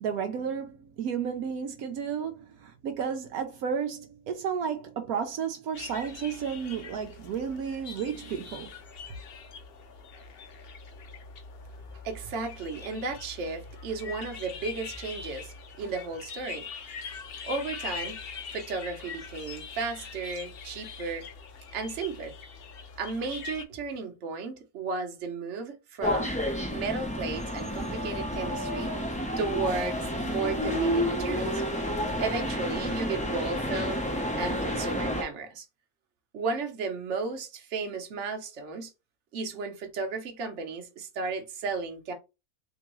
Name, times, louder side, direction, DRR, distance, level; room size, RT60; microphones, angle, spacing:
voice 1, 0.0-8.7, right 7 dB, 80° right, 1.1 m, -32 dB
sound 1, 5.7-23.6, left 5 dB, 60° left, 0.7 m, -43 dB
voice 2, 12.0-16.7 17.4-18.2 18.5-21.2 21.7-22.3 23.0-26.3 26.7-28.9 29.4-31.6 32.2-34.0 34.4-35.7 36.3-38.9 39.3-42.1, right 4 dB, 55° right, 1.1 m, -34 dB
sound 2, 26.0-35.2, equal, 10° left, 0.4 m, -30 dB
3.5 x 3.0 x 3.0 m
omnidirectional pair, 1.5 m